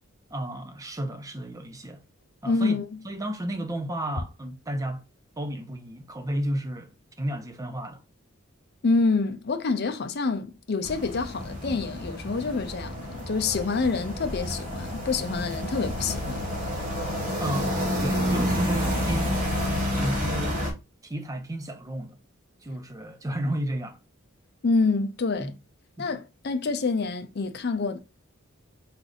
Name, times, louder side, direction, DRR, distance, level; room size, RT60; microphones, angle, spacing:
voice 1, 0.3-2.0 2.4-2.8 3.0-5.0 5.4-8.0 17.4-17.7 18.0-19.3 19.9-20.6 21.0-22.2 22.6-24.0 25.4-25.6 26.0-26.1, right 1 dB, 15° right, 0.6 m, -32 dB
voice 2, 2.5-2.8 8.8-16.5 24.6-25.5 26.0-28.0, left 4 dB, 50° left, 0.6 m, -27 dB
sound 1, 10.8-20.7, equal, 35° right, 1.8 m, -29 dB
3.8 x 3.3 x 3.9 m
head